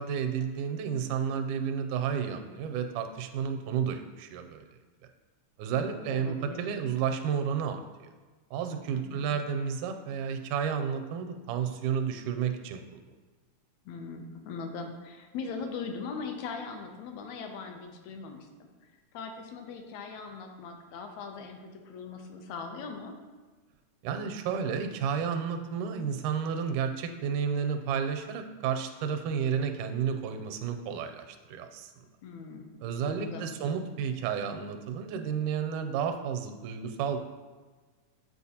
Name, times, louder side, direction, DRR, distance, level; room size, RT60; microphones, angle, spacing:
voice 1, 0.0-4.6 5.6-8.1 8.5-13.0 24.0-31.9 32.8-37.2, right 7 dB, 85° right, 7 dB, 2.0 m, -31 dB
voice 2, 5.8-6.8 8.9-9.3 13.9-18.5 19.1-23.2 32.2-32.7 33.0-33.5, left 5 dB, 75° left, 4 dB, 1.8 m, -40 dB
8.6 x 4.5 x 2.8 m, 1.4 s
omnidirectional pair, 3.5 m